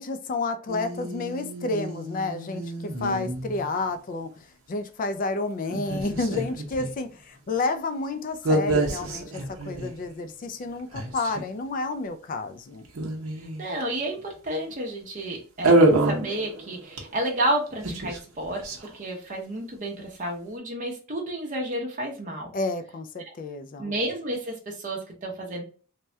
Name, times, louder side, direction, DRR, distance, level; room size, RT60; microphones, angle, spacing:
voice 1, 0.0-12.9 22.5-24.0, left 3 dB, 40° left, 0.3 m, -30 dB
sound 1, 0.7-3.9 5.7-6.9 8.4-10.1 10.6-10.7 10.9-11.4 12.8-13.8 15.6-17.3 17.6-19.0, right 2 dB, 75° right, 0.8 m, -27 dB
voice 2, 13.6-18.7 18.9-22.5 23.8-25.6, right 1 dB, 35° right, 0.7 m, -31 dB
3.3 x 2.2 x 2.7 m
head